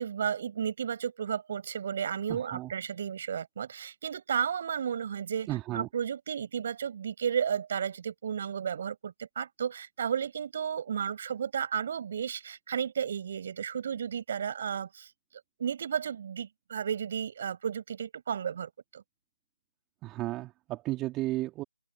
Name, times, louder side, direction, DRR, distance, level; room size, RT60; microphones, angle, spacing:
voice 1, 0.0-15.1 15.6-19.0, right 8 dB, 35° right, 5.9 m, -33 dB
voice 2, 2.3-2.7 5.5-5.9 20.0-21.6, right 17 dB, 10° right, 2.3 m, -34 dB
figure-of-eight pair, 150°, 0 cm